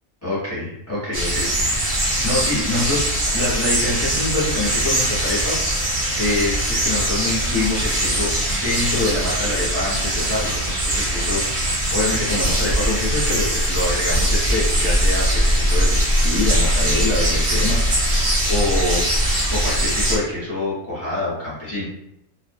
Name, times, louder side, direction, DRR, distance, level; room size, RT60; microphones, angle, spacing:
voice 1, 0.2-3.1 3.3-5.5 6.2-11.4 11.9-18.2 18.5-19.0 19.5-21.8, left 2 dB, 10° left, -10 dB, 0.8 m, -25 dB
sound 1, 1.1-20.2, right 1 dB, 65° right, 0.3 m, -21 dB
2.5 x 2.0 x 2.5 m, 0.79 s
omnidirectional pair, 1.5 m